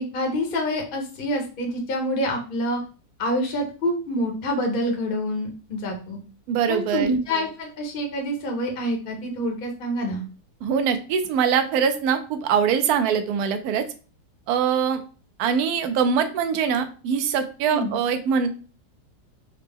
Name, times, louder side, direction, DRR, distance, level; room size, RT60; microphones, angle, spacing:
voice 1, 0.0-2.8 3.2-6.2 6.7-10.2 17.7-18.0, equal, 45° left, 1 dB, 0.7 m, -27 dB
voice 2, 6.5-7.2 10.6-13.8 14.5-15.0 15.4-18.5, right 7 dB, 70° right, 8 dB, 1.0 m, -23 dB
4.1 x 2.1 x 3.4 m, 0.36 s
omnidirectional pair, 1.8 m